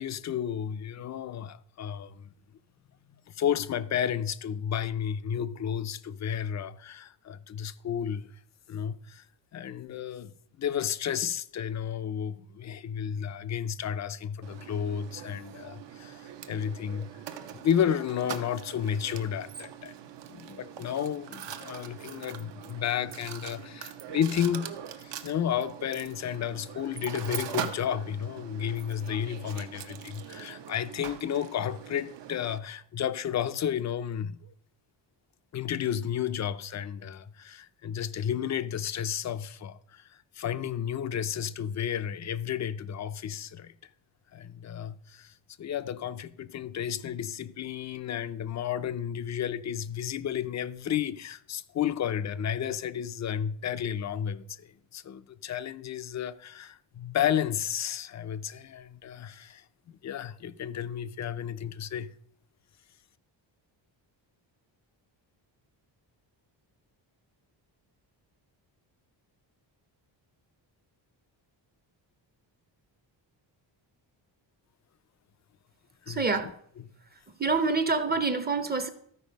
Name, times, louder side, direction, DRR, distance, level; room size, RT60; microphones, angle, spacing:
voice 1, 0.0-2.3 3.3-8.3 8.7-9.3 9.5-17.1 17.5-19.9 20.3-24.7 25.0-34.4 35.5-43.7 44.3-62.1 76.0-76.5, left 9 dB, 40° left, 0.4 m, -32 dB
Mechanisms, 14.4-32.6, right 9 dB, 65° right, 0.8 m, -42 dB
voice 2, 76.1-76.5 77.4-78.9, right 4 dB, 20° right, 0.6 m, -26 dB
13.5 x 4.7 x 5.1 m
wide cardioid pair, 160°, 46 cm